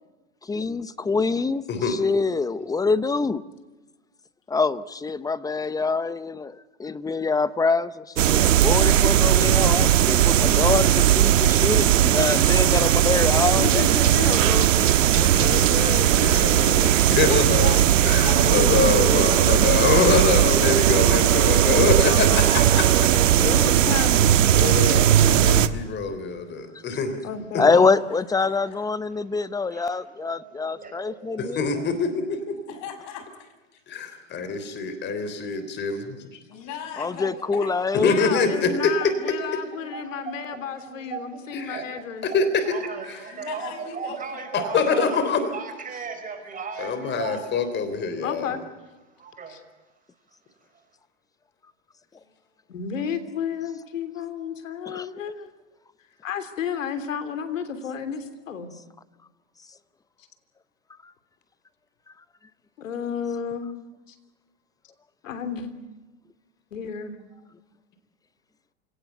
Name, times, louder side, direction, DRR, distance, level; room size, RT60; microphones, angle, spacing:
voice 1, 0.4-3.4 4.5-13.8 27.6-31.6 37.0-38.1 54.9-55.1, left 4 dB, 10° left, 16 dB, 0.8 m, -25 dB
sound 1, 8.2-25.7, right 11 dB, 80° right, 1.4 m, -18 dB
voice 2, 13.5-15.0 15.3-16.1 18.2-19.5 21.6-21.7 22.0-22.6 23.4-24.4 27.2-27.8 36.6-36.7 38.0-42.3 48.2-48.6 49.5-49.6 52.7-55.5 56.2-58.7 62.8-63.7 64.1-64.2 65.2-65.7 66.7-67.2, left 6 dB, 85° left, 10 dB, 3.2 m, -31 dB
voice 3, 15.1-22.9 23.4-23.5 24.5-27.2 27.5-27.6 31.4-32.6 33.9-36.2 38.0-39.1 41.5-41.8 42.2-42.6 44.5-45.4 46.8-48.5, left 4 dB, 30° left, 9 dB, 3.5 m, -25 dB
voice 4, 17.1-17.8 18.1-19.7 20.5-21.6 22.7-23.5 27.7-27.9 28.4-28.8 32.7-33.5 36.5-37.7 43.3-44.4, left 7 dB, 45° left, 8 dB, 6.0 m, -39 dB
voice 5, 29.2-31.6 39.2-42.4 42.7-47.4 49.2-49.6, right 5 dB, 20° right, 5 dB, 5.4 m, -38 dB
28.5 x 18.0 x 8.1 m, 1.2 s
hypercardioid pair, 120°, 38 cm